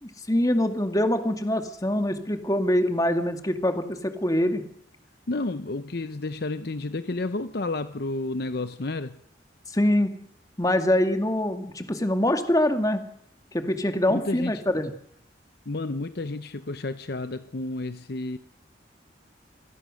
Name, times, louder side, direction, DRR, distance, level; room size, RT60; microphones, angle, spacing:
voice 1, 0.0-4.6 9.7-10.1 10.6-13.0 13.5-14.9, left 1 dB, 20° left, 2.2 m, -24 dB
voice 2, 5.3-9.2 14.1-14.6 15.7-18.4, left 2 dB, 60° left, 0.8 m, -31 dB
26.5 x 18.5 x 6.5 m
head